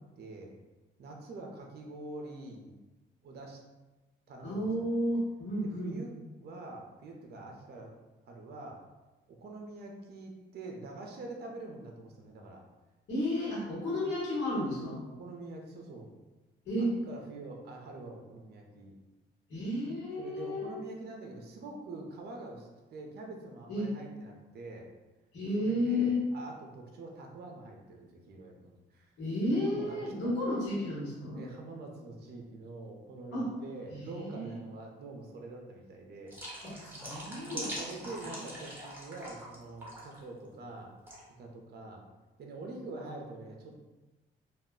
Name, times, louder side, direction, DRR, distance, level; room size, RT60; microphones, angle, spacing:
voice 1, 0.2-0.5 1.0-2.7 3.2-3.6 4.3-4.9 5.6-6.1 6.4-7.9 8.3-8.8 9.4-12.6 15.2-16.1 16.8-18.9 20.2-24.9 25.6-29.1 29.7-30.0 30.2-30.3 31.3-36.3 37.4-41.0 41.4-42.0 42.4-43.7, right 2 dB, 55° right, 1 dB, 0.5 m, -45 dB
voice 2, 4.4-6.0 13.1-15.0 16.6-16.9 19.5-20.7 23.7-23.9 25.3-26.2 29.2-31.4 33.3-33.5 33.9-34.5 36.6-37.6, left 1 dB, 65° left, -7 dB, 1.2 m, -32 dB
sound 1, 36.3-39.6 39.8-40.2 41.1-41.2, equal, 10° right, 0.9 m, -42 dB
2.3 x 2.1 x 3.6 m, 1.1 s
cardioid pair, 90°, 20 cm